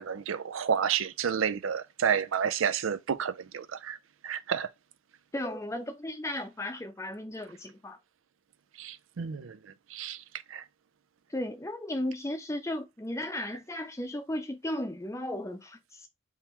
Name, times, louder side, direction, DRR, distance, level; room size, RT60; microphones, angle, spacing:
voice 1, 0.0-4.0 4.2-4.7 8.8-10.6, right 7 dB, 80° right, 0.5 m, -30 dB
voice 2, 5.3-8.0 11.3-16.1, left 1 dB, 15° left, 0.6 m, -35 dB
3.7 x 3.0 x 4.4 m
head